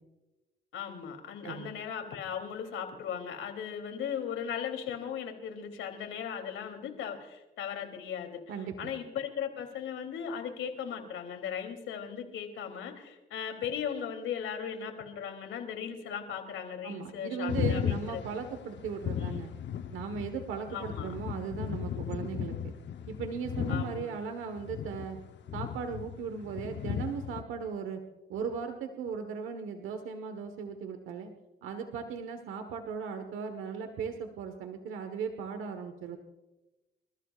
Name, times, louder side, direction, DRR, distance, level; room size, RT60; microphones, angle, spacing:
voice 1, 0.7-8.4 8.8-18.2 19.2-19.5 20.7-21.1 23.7-24.1, left 8 dB, 80° left, 5 dB, 3.0 m, -37 dB
voice 2, 8.5-8.9 16.8-19.5 19.9-22.7 23.1-25.2 25.5-28.0 28.3-31.3 31.6-36.2, right 6 dB, 90° right, 6 dB, 1.3 m, -37 dB
sound 1, 17.5-24.0 24.4-27.4, left 9 dB, 65° left, 0.9 m, -36 dB
28.0 x 14.0 x 2.4 m, 1.0 s
cardioid pair, 90°, 20 cm